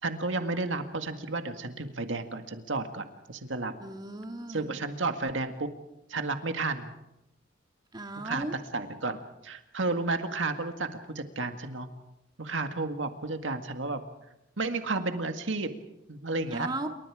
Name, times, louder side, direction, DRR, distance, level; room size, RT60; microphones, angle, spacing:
voice 1, 0.0-3.7 4.5-5.7 6.1-6.9 8.2-11.9 12.4-14.0 14.6-15.7 16.1-16.7, right 3 dB, 75° right, 7 dB, 1.9 m, -32 dB
voice 2, 3.8-4.7 7.9-8.5 16.5-16.9, right 2 dB, 20° right, 4 dB, 2.2 m, -36 dB
28.5 x 24.0 x 5.0 m, 0.87 s
head